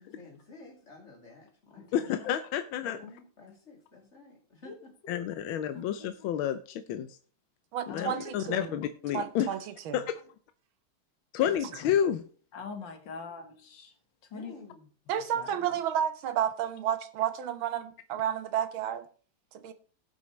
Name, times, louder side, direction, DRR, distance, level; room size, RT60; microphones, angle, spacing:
voice 1, 0.0-2.1 2.8-4.9 8.1-8.7 14.3-14.9, left 3 dB, 30° left, 3.1 m, -51 dB
voice 2, 1.9-3.0 5.1-7.2 7.9-9.5 9.9-10.1 11.3-12.2, left 10 dB, 75° left, 1.4 m, -30 dB
voice 3, 7.7-8.6 9.1-9.6 9.9-10.0 15.1-19.1 19.5-19.7, right 9 dB, 70° right, 1.7 m, -31 dB
voice 4, 12.5-13.9 14.3-14.5 15.4-15.7, left 5 dB, 60° left, 2.2 m, -42 dB
18.5 x 6.2 x 3.1 m
omnidirectional pair, 2.3 m